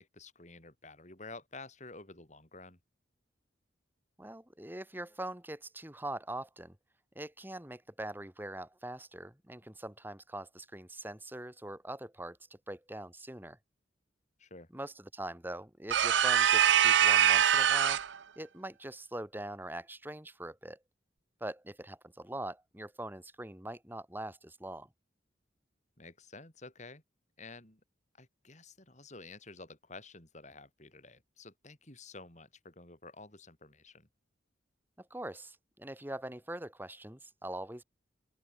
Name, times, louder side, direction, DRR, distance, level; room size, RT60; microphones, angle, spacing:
voice 1, 0.0-2.8 14.4-14.7 26.0-27.0 27.4-27.8 28.2-34.1, left 3 dB, 40° left, 4.2 m, -51 dB
voice 2, 4.2-6.8 7.2-12.4 12.7-13.6 14.7-18.0 18.4-20.8 21.4-24.9 35.0-37.8, right 1 dB, 10° right, 1.9 m, -42 dB
sound 1, 15.9-18.2, right 9 dB, 75° right, 0.6 m, -24 dB
open air
head